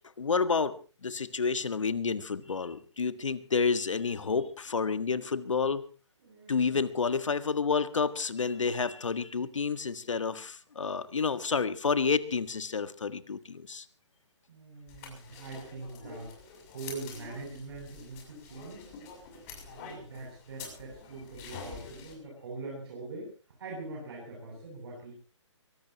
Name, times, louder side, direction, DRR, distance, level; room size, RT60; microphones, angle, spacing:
voice 1, 0.2-5.8 6.5-13.8, left 5 dB, 80° left, 12 dB, 1.6 m, -30 dB
voice 2, 6.2-6.8 14.5-18.9 19.7-23.3 23.6-25.1, right 3 dB, 55° right, -1 dB, 7.9 m, -43 dB
sound 1, 14.9-22.1, left 5 dB, 30° left, 6.8 m, -47 dB
23.5 x 18.5 x 3.0 m, 0.35 s
hypercardioid pair, 145°, 16 cm